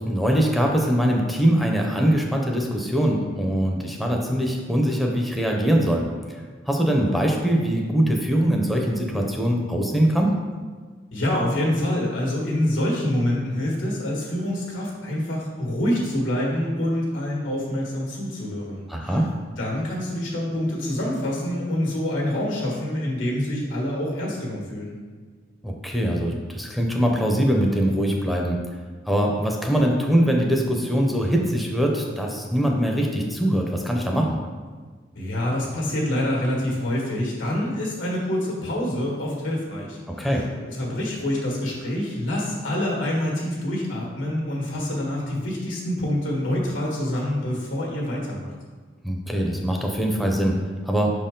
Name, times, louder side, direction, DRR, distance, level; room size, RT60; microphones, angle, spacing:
voice 1, 0.1-6.0 6.7-10.4 18.9-19.2 25.6-28.6 29.1-34.3 40.2-40.4 49.0-50.6 50.8-51.1, equal, ahead, 0 dB, 0.6 m, -22 dB
voice 2, 11.1-19.2 19.6-24.9 35.1-48.5, left 1 dB, 90° left, -3 dB, 1.7 m, -26 dB
5.8 x 4.4 x 3.8 m, 1.5 s
head